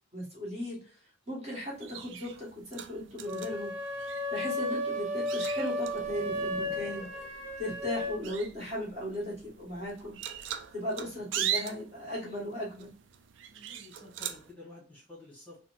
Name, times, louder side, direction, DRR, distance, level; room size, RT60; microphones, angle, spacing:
voice 1, 0.1-0.8 1.3-3.7 4.3-7.1 7.6-10.2 10.7-12.9, left 1 dB, 35° right, -5 dB, 1.5 m, -37 dB
sound 1, 1.7-14.5, right 9 dB, 70° right, 0.3 m, -41 dB
sound 2, 3.2-8.2, left 1 dB, 90° right, 0.9 m, -34 dB
sound 3, 5.8-10.5, left 3 dB, 40° left, 0.5 m, -50 dB
voice 2, 13.5-15.6, left 2 dB, 10° left, -5 dB, 1.5 m, -51 dB
3.9 x 2.1 x 2.5 m, 0.38 s
head